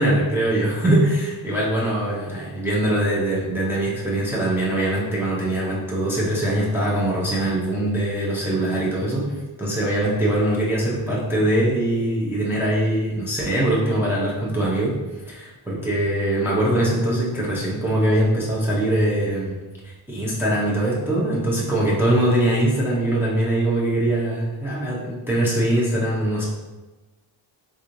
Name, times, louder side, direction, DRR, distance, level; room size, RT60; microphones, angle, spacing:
voice 1, 0.0-14.9 15.2-19.6 19.8-26.4, right 1 dB, 5° right, -6 dB, 0.5 m, -22 dB
3.6 x 2.9 x 2.5 m, 1.1 s
wide cardioid pair, 140°, 44 cm